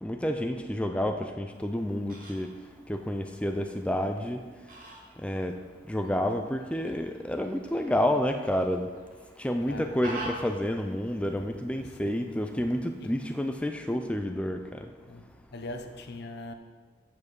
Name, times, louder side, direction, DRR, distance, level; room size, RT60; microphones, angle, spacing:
voice 1, 0.0-2.5 2.9-4.4 5.2-5.6 5.9-8.9 9.4-14.9, left 1 dB, 5° left, 0.4 m, -29 dB
Fowl, 1.5-13.5, right 2 dB, 50° right, 1.8 m, -48 dB
voice 2, 9.7-10.0 11.8-12.4 13.0-13.1 15.1-16.5, left 2 dB, 60° left, 0.9 m, -42 dB
7.4 x 7.4 x 6.3 m
head